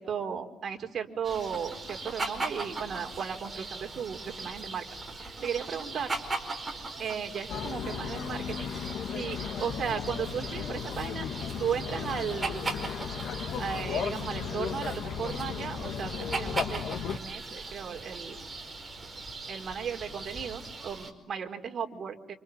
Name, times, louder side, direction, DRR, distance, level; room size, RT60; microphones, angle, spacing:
voice 1, 0.0-4.9 5.2-6.2 7.0-8.7 9.1-11.3 11.6-12.7 13.6-18.4 19.5-22.3, right 7 dB, 50° right, 3 dB, 4.2 m, -35 dB
sound 1, 1.2-21.1, right 3 dB, 20° right, 4.9 m, -39 dB
sound 2, 7.5-17.2, left 7 dB, 75° left, 1.9 m, -35 dB
28.5 x 28.0 x 7.3 m, 0.80 s
cardioid pair, 125°, 0 cm